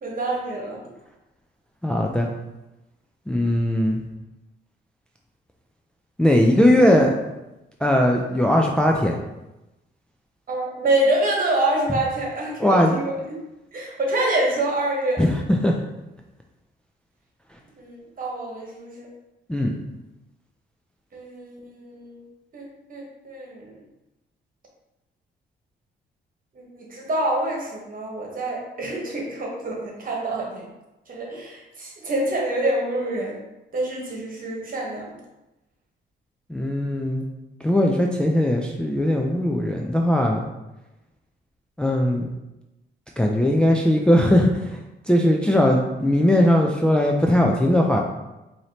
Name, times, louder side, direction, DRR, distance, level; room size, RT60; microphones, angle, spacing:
voice 1, 0.0-0.8 10.5-13.1 13.7-15.2 17.8-19.1 21.1-22.2 22.5-23.7 26.5-30.7 31.1-33.4 33.7-35.2, right 1 dB, 45° right, -1 dB, 1.3 m, -26 dB
voice 2, 1.8-2.3 3.3-4.0 6.2-7.2 7.8-9.1 12.6-13.0 15.2-15.3 15.6-15.7 19.5-19.7 36.5-37.2 37.6-40.4 41.8-42.3 43.2-44.7 45.1-48.0, left 1 dB, 5° left, 0 dB, 0.4 m, -19 dB
4.7 x 2.8 x 2.9 m, 0.98 s
cardioid pair, 90°, 20 cm